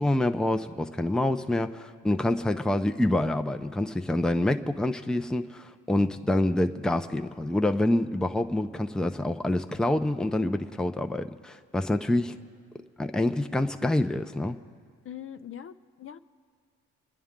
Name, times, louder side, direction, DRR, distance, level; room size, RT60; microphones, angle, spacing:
voice 1, 0.0-12.4 13.0-14.6, left 1 dB, ahead, 7 dB, 0.6 m, -27 dB
voice 2, 15.0-16.2, left 9 dB, 45° left, 10 dB, 0.5 m, -42 dB
28.5 x 10.0 x 3.7 m, 2.1 s
cardioid pair, 90°, 30 cm